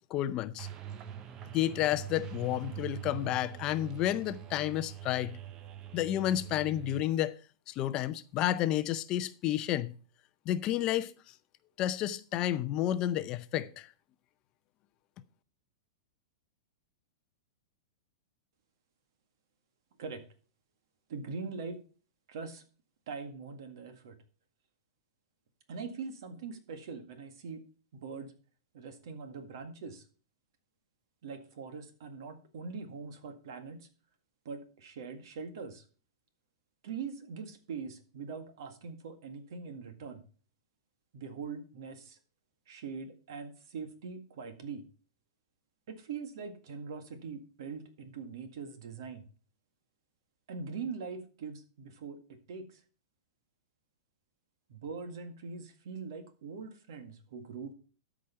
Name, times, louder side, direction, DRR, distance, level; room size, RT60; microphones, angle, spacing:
voice 1, 0.1-0.7 1.5-5.4 5.9-7.3 7.7-9.9 10.5-11.3 11.8-13.9, left 13 dB, 30° left, 0.5 m, -31 dB
sound 1, 0.6-7.0, right 10 dB, 30° right, 0.8 m, -43 dB
voice 2, 21.1-21.8 22.3-22.6 23.1-24.2 25.7-27.6 27.9-28.3 28.7-30.0 31.2-33.9 34.5-35.8 36.8-40.2 41.1-42.2 42.7-44.9 45.9-49.2 50.5-52.8 54.7-57.7, right 5 dB, 65° right, 1.8 m, -42 dB
13.0 x 5.0 x 5.6 m
hypercardioid pair, 150°, 2 cm